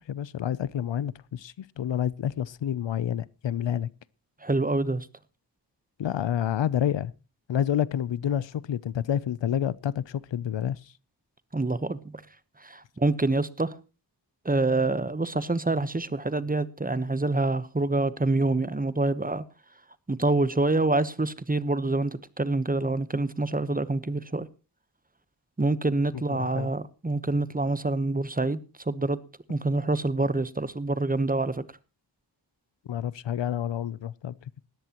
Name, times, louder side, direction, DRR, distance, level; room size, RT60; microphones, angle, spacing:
voice 1, 0.1-3.9 6.0-7.1 7.5-10.9 26.1-26.7 32.9-34.3, left 9 dB, 80° left, 0.7 m, -29 dB
voice 2, 4.4-5.1 11.5-12.0 12.6-13.7 14.4-19.4 20.1-24.5 25.6-28.6 28.9-29.2 29.5-31.6, right 2 dB, 20° right, 1.0 m, -26 dB
19.0 x 14.0 x 3.0 m
wide cardioid pair, 85°, 43 cm